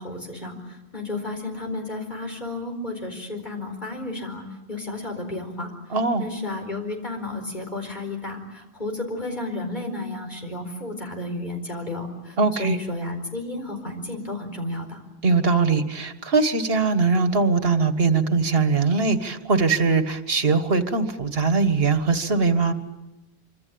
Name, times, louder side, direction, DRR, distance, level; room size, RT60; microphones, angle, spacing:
voice 1, 0.0-4.4 4.7-5.7 6.2-15.0, left 2 dB, 45° left, 4 dB, 4.7 m, -32 dB
voice 2, 5.9-6.2 12.4-12.8 15.2-22.7, right 4 dB, 65° right, 9 dB, 1.9 m, -21 dB
25.5 x 25.5 x 8.7 m, 0.96 s
omnidirectional pair, 1.1 m